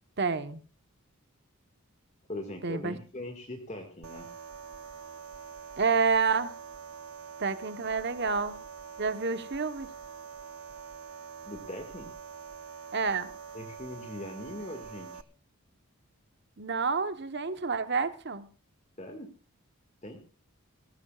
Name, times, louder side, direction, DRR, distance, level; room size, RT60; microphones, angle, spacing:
voice 1, 0.2-0.6 2.6-3.0 5.8-6.5 7.4-8.6 9.0-9.9 12.9-13.3 16.6-18.5, right 5 dB, 50° right, 1.1 m, -29 dB
voice 2, 2.3-4.3 11.4-12.1 13.5-15.2 19.0-19.3 20.0-20.2, left 1 dB, 30° left, 1.9 m, -41 dB
sound 1, 4.0-15.2, right 6 dB, 75° right, 0.8 m, -45 dB
19.5 x 16.0 x 2.4 m
head